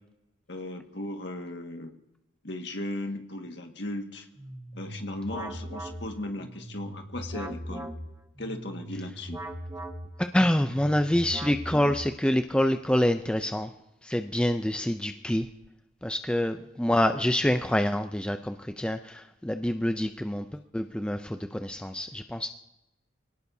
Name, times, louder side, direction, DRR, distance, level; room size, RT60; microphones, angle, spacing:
voice 1, 0.5-1.9 2.4-4.3 4.7-7.9 8.4-9.4, left 1 dB, 60° left, 3 dB, 1.8 m, -36 dB
sound 1, 4.4-12.4, equal, 15° right, 1.2 m, -39 dB
voice 2, 10.2-13.7 14.0-15.5 16.0-22.5, left 1 dB, 5° left, 7 dB, 0.4 m, -26 dB
25.0 x 18.0 x 2.8 m, 0.91 s
head